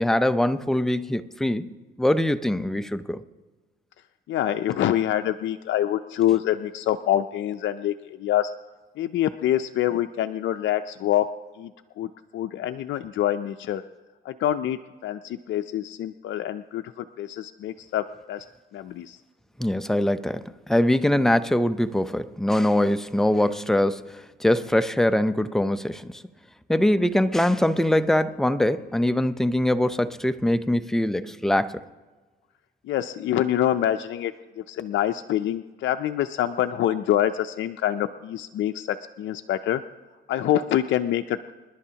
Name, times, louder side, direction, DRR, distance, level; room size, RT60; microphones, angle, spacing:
voice 1, 0.0-3.2 19.6-26.2 26.7-31.8, left 1 dB, ahead, 0.6 m, -23 dB
voice 2, 4.3-8.5 9.0-11.3 11.6-11.7 12.0-13.8 14.2-18.4 18.7-19.2 32.8-39.8 40.3-41.5, left 12 dB, 70° left, 0.5 m, -26 dB
27.5 x 11.0 x 2.9 m
cardioid pair, 90°, 20 cm